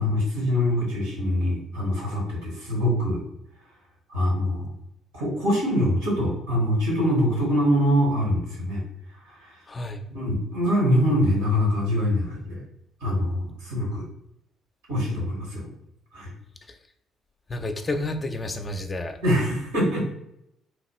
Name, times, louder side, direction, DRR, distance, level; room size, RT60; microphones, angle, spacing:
voice 1, 0.0-3.2 4.1-4.7 5.1-8.8 9.2-9.6 10.1-12.6 13.0-14.1 14.9-15.7 16.1-16.3 19.2-20.0, equal, 80° right, -4 dB, 1.3 m, -24 dB
voice 2, 9.7-10.0 17.5-19.2, left 2 dB, 30° left, 6 dB, 0.4 m, -30 dB
3.0 x 2.3 x 3.0 m, 0.80 s
hypercardioid pair, 45°, 0 cm